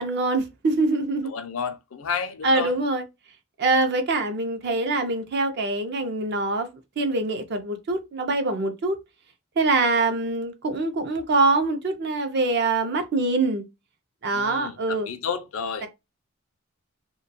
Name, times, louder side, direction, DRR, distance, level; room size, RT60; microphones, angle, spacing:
voice 1, 0.0-1.3 2.4-3.0 3.6-6.7 7.0-9.0 9.6-13.6 14.2-15.1 15.8-15.9, right 3 dB, 55° right, 0.5 m, -24 dB
voice 2, 1.2-2.8 14.3-15.9, left 6 dB, 75° left, 0.4 m, -31 dB
2.2 x 2.2 x 2.6 m
head